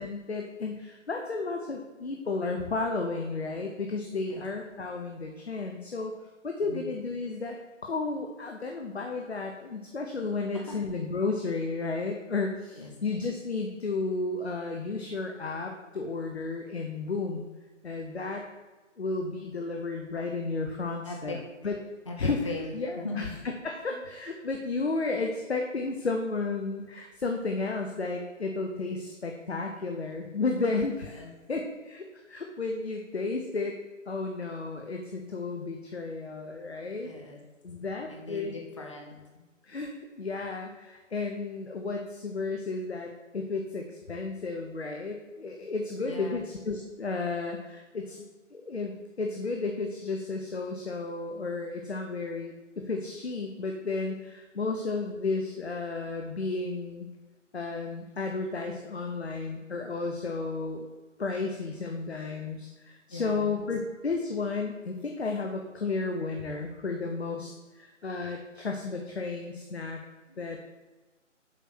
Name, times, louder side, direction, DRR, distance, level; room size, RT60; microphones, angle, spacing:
voice 1, 0.0-6.1 6.4-7.6 7.8-17.5 17.8-18.4 19.0-21.8 22.2-23.3 23.6-33.8 34.1-37.1 37.6-38.5 39.6-57.1 57.5-60.9 61.2-70.0 70.4-70.6, left 3 dB, 55° left, 2 dB, 1.0 m, -33 dB
voice 2, 21.0-21.4 22.1-23.3 31.2-31.3 37.0-37.4 38.0-39.1 46.1-46.5 63.1-63.6 70.3-70.4, left 3 dB, 25° left, 0 dB, 0.6 m, -39 dB
7.4 x 5.1 x 6.1 m, 1.2 s
figure-of-eight pair, 155°, 38 cm